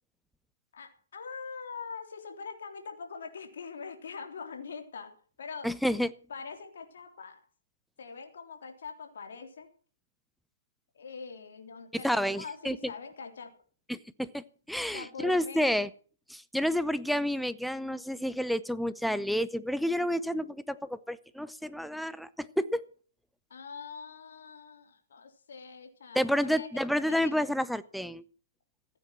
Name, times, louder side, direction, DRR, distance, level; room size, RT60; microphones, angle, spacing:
voice 1, 0.7-5.1 5.4-5.7 6.3-7.4 8.0-9.7 10.9-13.5 14.9-15.8 23.5-26.7 27.1-27.4, left 5 dB, 65° left, 4 dB, 3.5 m, -43 dB
voice 2, 5.6-6.1 12.0-12.8 13.9-15.9 16.3-22.8 26.1-28.2, equal, ahead, 15 dB, 0.6 m, -30 dB
15.5 x 9.1 x 7.5 m, 0.43 s
hypercardioid pair, 145°, 0 cm